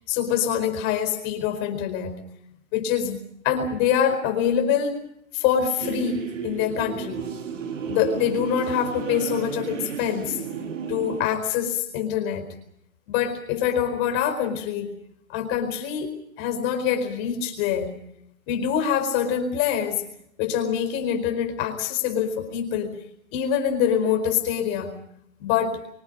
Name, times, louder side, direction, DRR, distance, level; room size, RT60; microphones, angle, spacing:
voice 1, 0.1-2.1 2.7-3.2 3.4-5.0 5.3-7.3 7.9-10.4 10.9-12.5 13.1-14.9 15.3-17.9 18.5-20.0 20.4-22.9 23.3-24.9 25.4-25.8, left 8 dB, 30° left, 6 dB, 4.6 m, -25 dB
sound 1, 5.8-11.2, right 7 dB, 65° right, 3.9 m, -33 dB
28.5 x 25.5 x 5.4 m, 0.73 s
hypercardioid pair, 145°, 41 cm